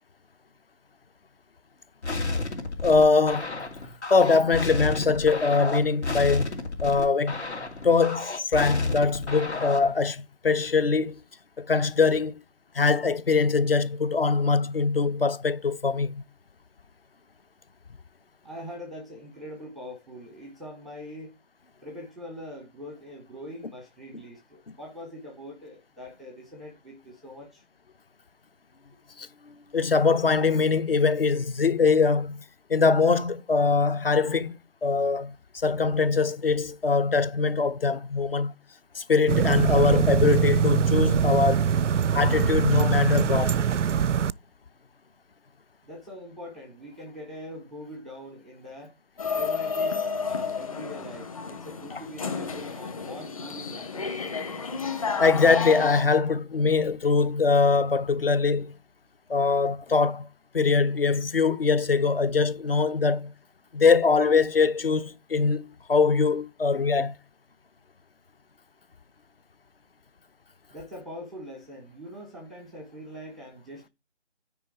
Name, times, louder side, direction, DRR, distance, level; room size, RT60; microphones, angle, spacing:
sound 1, 2.0-10.0, left 3 dB, 70° left, 2.6 m, -31 dB
voice 1, 2.8-3.6 4.1-6.5 6.8-7.4 7.8-11.2 11.6-12.4 12.7-16.2 29.2-32.4 32.7-38.5 38.9-41.7 42.1-43.6 55.2-58.7 59.3-60.3 60.5-63.3 63.7-67.1, left 4 dB, 55° left, 0.8 m, -22 dB
voice 2, 18.4-21.3 21.8-27.6 45.8-48.9 49.4-54.3 70.7-73.9, equal, ahead, 0.5 m, -43 dB
sound 2, 39.3-44.3, right 7 dB, 90° right, 0.5 m, -23 dB
sound 3, 49.2-56.0, left 5 dB, 30° left, 1.2 m, -31 dB
9.5 x 4.9 x 4.6 m
figure-of-eight pair, 160°, 35 cm